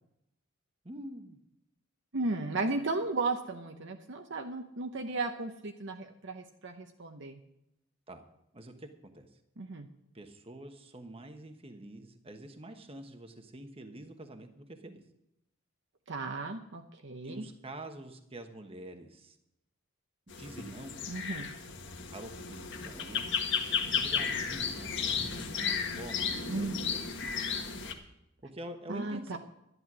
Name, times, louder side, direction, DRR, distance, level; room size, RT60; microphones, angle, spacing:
voice 1, 0.8-1.4 8.1-8.2 8.5-9.3 10.1-15.0 17.2-19.4 20.3-21.0 22.1-23.2 23.8-27.5 28.4-29.4, right 1 dB, 25° right, 5 dB, 1.1 m, -46 dB
voice 2, 2.1-7.4 9.6-9.9 16.1-17.5 21.1-21.5 26.5-27.0 28.9-29.4, right 3 dB, 60° right, 4 dB, 0.9 m, -35 dB
sound 1, 20.3-27.9, left 6 dB, 55° left, 1.6 m, -34 dB
12.5 x 11.0 x 6.1 m, 0.82 s
head